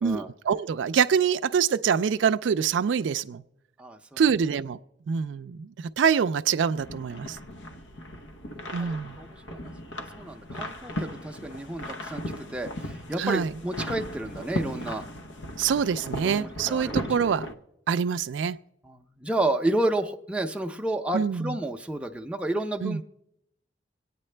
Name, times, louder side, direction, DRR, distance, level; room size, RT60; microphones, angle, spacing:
voice 1, 0.0-3.4 4.2-4.8 5.1-7.4 8.7-9.2 13.2-13.5 15.6-17.5 17.9-18.6 21.1-21.6 22.8-23.0, right 7 dB, 75° right, 11 dB, 0.4 m, -25 dB
voice 2, 3.8-4.2 8.8-9.7 10.1-12.2 12.5-15.0 16.2-17.4 18.8-23.0, right 1 dB, 5° right, 3 dB, 0.5 m, -31 dB
sound 1, 6.8-17.5, left 1 dB, 85° left, 0.9 m, -37 dB
25.5 x 9.2 x 3.3 m, 0.84 s
head